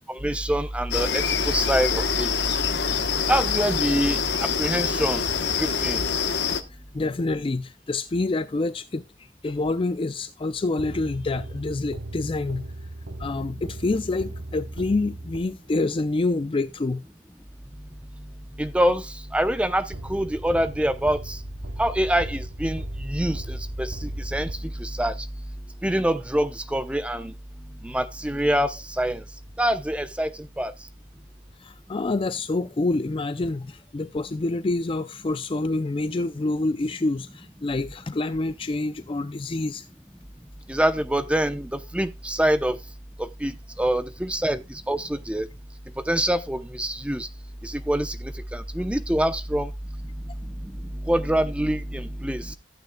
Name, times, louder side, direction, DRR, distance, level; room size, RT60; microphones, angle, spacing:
voice 1, 0.2-2.3 3.3-4.2 4.6-5.2 5.6-6.0 18.6-19.0 19.3-21.4 21.8-24.5 24.8-25.1 25.8-27.3 27.8-29.2 29.6-30.3 30.6-30.7 40.7-42.8 43.4-43.5 43.8-44.6 44.9-45.5 46.1-47.3 47.6-48.2 48.5-49.7 51.1-52.6, right 1 dB, 5° right, 0.7 m, -25 dB
sound 1, 0.9-6.6, left 6 dB, 65° left, 1.1 m, -25 dB
voice 2, 6.9-9.0 9.4-12.6 13.2-17.0 31.6-39.9, left 2 dB, 30° left, 0.4 m, -27 dB
sound 2, 10.8-15.9 19.9-25.1, right 1 dB, 90° right, 0.9 m, -39 dB
14.5 x 9.2 x 2.3 m
head